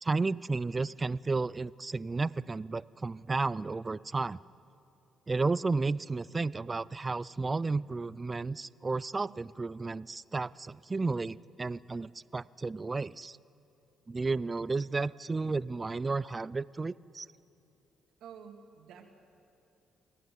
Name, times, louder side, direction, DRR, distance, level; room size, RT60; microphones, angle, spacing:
voice 1, 0.0-4.4 5.3-13.4 14.1-17.3, right 3 dB, 25° right, 20 dB, 0.4 m, -32 dB
voice 2, 18.2-19.1, right 7 dB, 85° right, 3 dB, 2.3 m, -50 dB
23.0 x 15.5 x 9.4 m, 2.7 s
cardioid pair, 90°, 0 cm